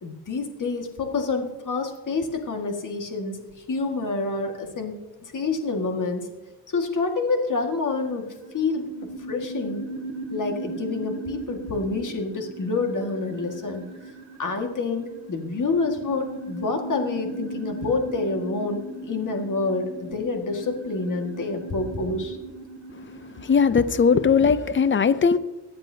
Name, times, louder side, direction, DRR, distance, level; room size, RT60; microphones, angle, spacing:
voice 1, 0.0-3.4 3.7-6.3 6.7-8.3 8.5-8.9 9.3-9.9 10.3-13.8 14.4-22.4, left 3 dB, 45° left, 3 dB, 1.9 m, -27 dB
sound 1, 7.9-24.2, right 2 dB, 75° right, 1.5 m, -38 dB
voice 2, 23.4-25.4, left 6 dB, 30° left, 14 dB, 0.5 m, -19 dB
22.5 x 8.9 x 2.8 m, 1.1 s
cardioid pair, 130°, 43 cm